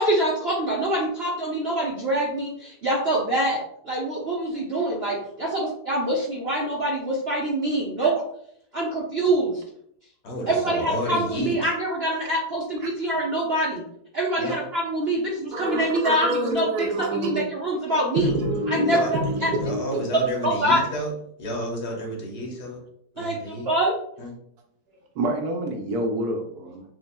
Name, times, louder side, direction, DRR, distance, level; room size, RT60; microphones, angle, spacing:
voice 1, 0.0-3.6 3.8-5.5 5.9-8.1 8.7-9.6 10.5-13.8 14.1-16.7 17.0-18.3 18.7-19.1 19.4-19.5 20.4-20.8 23.2-23.9, right 1 dB, 50° right, -4 dB, 0.8 m, -25 dB
voice 2, 10.2-11.7 14.4-14.5 18.8-21.1 21.4-22.8 23.2-23.7 24.2-24.3, equal, 65° left, -1 dB, 1.6 m, -31 dB
voice 3, 15.5-17.4 18.1-20.1 25.2-26.8, right 1 dB, 70° right, 3 dB, 1.1 m, -27 dB
6.8 x 2.4 x 2.2 m, 0.70 s
omnidirectional pair, 1.9 m